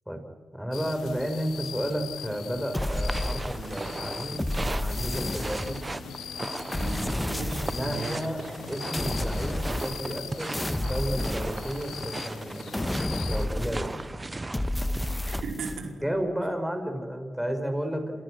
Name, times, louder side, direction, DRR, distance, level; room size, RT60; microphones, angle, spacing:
voice 1, 0.5-5.8 7.7-12.7 13.3-13.9 16.0-18.1, equal, 5° right, 5 dB, 5.7 m, -32 dB
sound 1, 0.7-13.5, left 9 dB, 90° left, 1.0 m, -41 dB
sound 2, 2.7-3.9 4.4-6.0 6.7-8.0 8.9-10.2 10.5-12.1 12.7-14.1 14.5-15.8, left 1 dB, 20° left, 1.5 m, -31 dB
sound 3, 2.7-15.4, right 2 dB, 30° right, 0.9 m, -38 dB
voice 2, 6.7-8.2 15.2-16.0, right 4 dB, 80° right, 2 dB, 4.8 m, -36 dB
29.5 x 28.0 x 6.5 m, 1.5 s
supercardioid pair, 50°, 0 cm